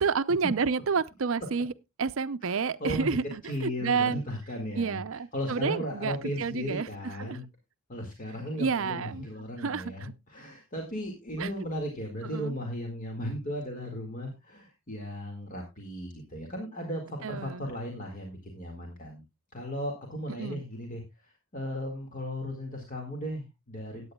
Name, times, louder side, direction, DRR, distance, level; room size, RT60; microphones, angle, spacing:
voice 1, 0.0-1.7 2.0-4.2 4.8-6.9 7.2-7.4 8.6-9.2 9.6-10.1 11.4-11.5 12.3-12.5 17.2-17.7 20.4-20.6, right 5 dB, 65° right, 0.6 m, -29 dB
voice 2, 2.4-5.0 5.3-7.4 7.9-19.2 19.5-24.1, equal, 40° left, 2.0 m, -36 dB
18.5 x 8.8 x 2.3 m
head